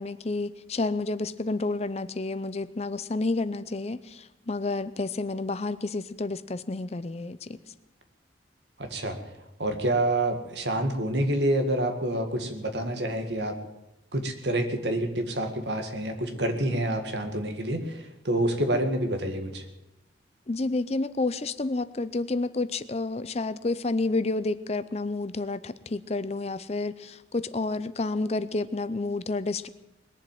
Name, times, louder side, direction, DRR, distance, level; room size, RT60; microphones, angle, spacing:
voice 1, 0.0-7.6 20.5-29.7, left 3 dB, 35° left, 15 dB, 0.6 m, -30 dB
voice 2, 8.8-9.2 9.6-13.6 14.1-19.6, right 1 dB, 70° right, 6 dB, 1.9 m, -27 dB
20.5 x 7.4 x 9.2 m, 0.94 s
head